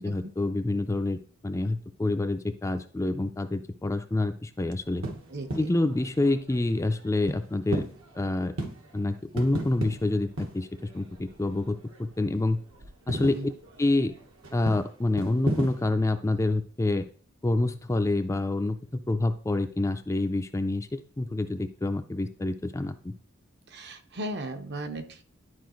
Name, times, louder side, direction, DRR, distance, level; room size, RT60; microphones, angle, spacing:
voice 1, 0.0-5.0 5.6-7.9 8.1-8.5 8.9-10.7 10.9-12.6 13.1-13.4 13.8-14.1 14.5-17.1 17.4-23.1, left 2 dB, 15° left, 8 dB, 0.4 m, -27 dB
sound 1, 4.8-12.3 12.5-15.9, right 1 dB, 75° right, 1.3 m, -37 dB
voice 2, 5.3-5.7 13.3-13.5 23.7-25.2, right 1 dB, 55° right, 8 dB, 0.8 m, -37 dB
11.5 x 4.7 x 3.1 m, 0.43 s
head